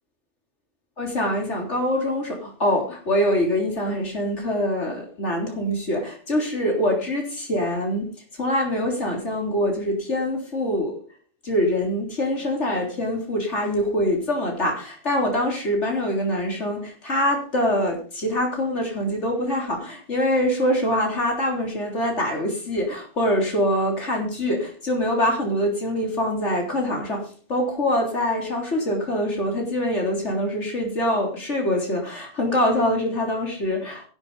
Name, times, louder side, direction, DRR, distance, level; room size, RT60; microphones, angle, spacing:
voice 1, 1.0-8.1 8.4-11.0 11.4-34.1, left 1 dB, 90° left, 1 dB, 3.9 m, -24 dB
11.5 x 10.5 x 5.4 m, 0.40 s
omnidirectional pair, 1.2 m